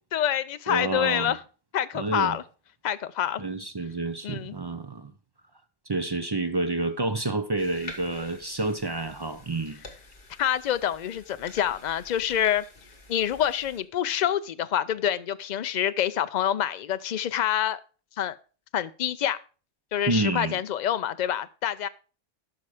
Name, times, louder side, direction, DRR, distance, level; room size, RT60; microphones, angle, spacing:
voice 1, 0.1-1.4 1.7-2.4 2.8-3.4 4.2-4.5 10.4-12.6 13.1-17.8 18.2-18.4 18.7-19.4 19.9-21.9, left 10 dB, 60° left, 0.4 m, -27 dB
voice 2, 0.7-1.3 1.9-2.4 3.4-5.1 5.9-9.8 20.1-20.6, right 2 dB, 40° right, 0.3 m, -29 dB
sound 1, 7.6-13.8, left 3 dB, 40° left, 1.6 m, -48 dB
12.0 x 5.5 x 4.8 m
omnidirectional pair, 1.3 m